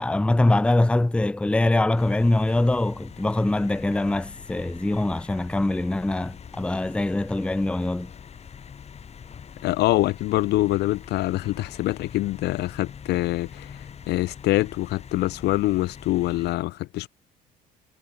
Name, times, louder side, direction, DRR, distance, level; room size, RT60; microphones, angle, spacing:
voice 1, 0.0-8.1, left 2 dB, 5° left, 0.7 m, -23 dB
sound 1, 2.0-16.6, left 7 dB, 40° left, 3.3 m, -44 dB
voice 2, 9.6-13.8 14.1-17.1, left 17 dB, 80° left, 1.0 m, -25 dB
cardioid pair, 110°, 17 cm